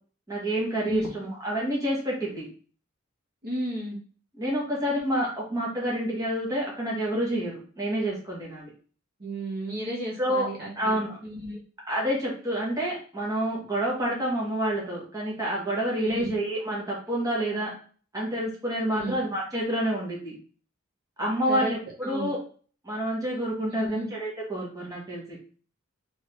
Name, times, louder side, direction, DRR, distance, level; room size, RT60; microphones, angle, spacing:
voice 1, 0.3-2.5 4.3-8.7 10.2-10.5 10.7-11.2 11.9-17.7 18.1-20.4 21.2-22.4 22.8-25.4, right 1 dB, 15° right, -4 dB, 1.1 m, -28 dB
voice 2, 3.4-4.0 9.2-10.9 11.2-11.6 16.0-16.3 18.9-19.2 21.5-21.7 22.0-22.3 23.7-24.1, right 1 dB, 45° right, -3 dB, 1.0 m, -33 dB
3.3 x 3.1 x 3.1 m, 0.42 s
head